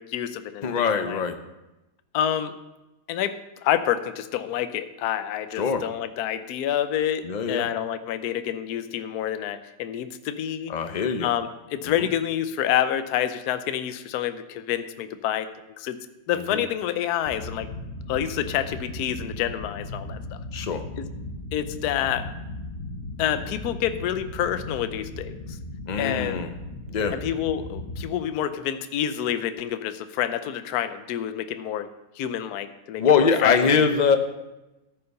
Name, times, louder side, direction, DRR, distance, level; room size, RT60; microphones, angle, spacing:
voice 1, 0.0-0.7 1.0-1.2 2.1-2.5 3.1-3.4 3.6-10.7 11.2-15.5 15.8-16.0 16.3-17.7 18.1-20.4 21.5-22.3 23.2-25.3 26.0-26.5 27.1-31.9 32.2-33.8, left 10 dB, 65° left, 10 dB, 1.1 m, -28 dB
voice 2, 0.6-1.4 5.6-5.8 7.2-7.7 10.7-11.3 12.0-12.1 16.5-16.6 20.5-20.8 25.9-26.5 26.9-27.1 33.0-34.4, left 6 dB, 50° left, 7 dB, 0.5 m, -22 dB
sound 1, 17.2-28.0, left 2 dB, 35° left, 0.9 m, -37 dB
14.0 x 5.8 x 6.5 m, 1.0 s
omnidirectional pair, 1.9 m